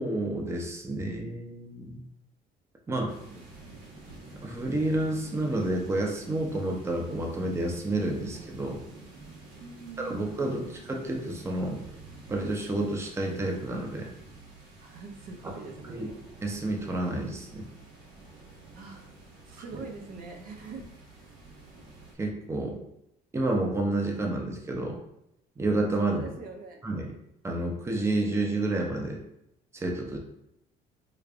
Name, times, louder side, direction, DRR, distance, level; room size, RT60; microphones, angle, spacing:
voice 1, 0.0-2.0 2.9-3.4 4.4-8.8 10.0-11.8 12.3-14.1 15.9-16.1 16.4-17.7 22.2-22.8 23.3-25.0 25.6-26.3 26.8-27.1 27.4-29.2 29.7-30.2, right 2 dB, 15° right, 1 dB, 0.6 m, -30 dB
sound 1, 3.1-22.1, right 2 dB, 80° right, 1.0 m, -49 dB
voice 2, 9.5-10.8 14.8-16.1 18.7-19.1 19.4-20.9 26.0-26.9, right 4 dB, 60° right, 2 dB, 0.7 m, -43 dB
5.0 x 2.3 x 2.4 m, 0.80 s
cardioid pair, 110°, 17 cm